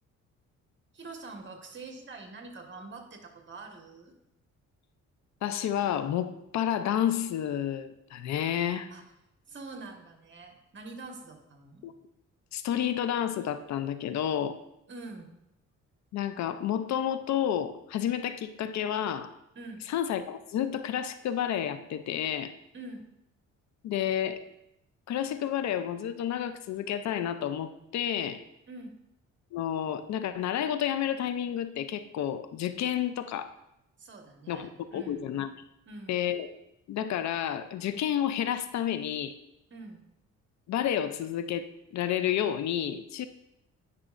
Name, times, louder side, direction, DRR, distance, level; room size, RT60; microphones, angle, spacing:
voice 1, 0.9-4.1 8.9-9.0 9.5-11.8 14.9-15.3 19.5-19.9 22.7-23.1 28.7-29.0 34.0-35.3 35.9-36.3 39.7-40.0, right 3 dB, 40° right, 3 dB, 1.4 m, -45 dB
voice 2, 5.4-8.9 11.8-11.9 12.5-14.6 16.1-19.3 19.9-22.5 23.8-24.4 25.1-28.4 29.5-33.5 34.5-35.5 36.1-36.5 36.9-39.3 40.7-43.3, left 10 dB, 65° left, 11 dB, 0.5 m, -30 dB
9.8 x 5.9 x 2.5 m, 0.84 s
cardioid pair, 90°, 30 cm